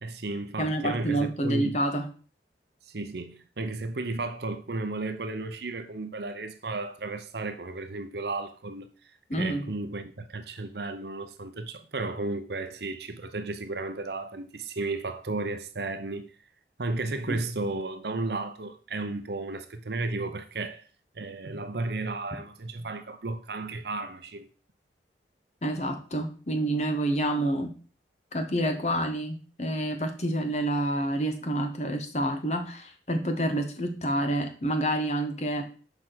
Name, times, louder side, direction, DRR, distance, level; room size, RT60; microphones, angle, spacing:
voice 1, 0.0-1.8 2.9-8.9 9.4-16.3 16.8-20.8 21.2-24.5, right 3 dB, 65° right, 0.8 m, -33 dB
voice 2, 0.6-2.1 9.3-9.7 17.3-17.4 25.6-27.7 28.3-35.6, right 1 dB, 40° left, 1.2 m, -28 dB
6.7 x 4.9 x 5.9 m
head